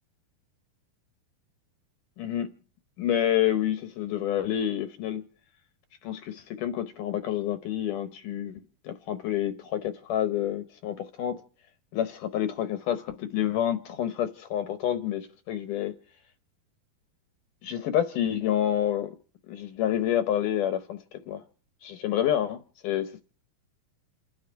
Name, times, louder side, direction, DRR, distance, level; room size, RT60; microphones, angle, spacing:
voice 1, 2.2-2.5 3.0-5.2 6.0-11.4 11.9-15.9 17.6-19.2 19.5-21.4 21.8-23.2, left 11 dB, 75° left, 2.0 m, -28 dB
29.0 x 10.5 x 4.5 m
omnidirectional pair, 4.6 m